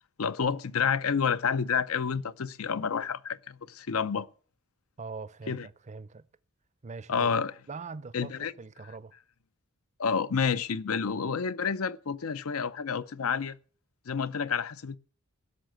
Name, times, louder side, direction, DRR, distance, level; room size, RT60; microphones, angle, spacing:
voice 1, 0.2-4.3 5.5-5.7 7.1-7.5 8.1-8.5 10.0-13.6 14.1-15.0, left 6 dB, 75° left, 0.6 m, -29 dB
voice 2, 5.0-6.3 6.8-7.3 7.7-9.1, right 4 dB, 30° right, 0.5 m, -42 dB
16.5 x 6.4 x 7.8 m
head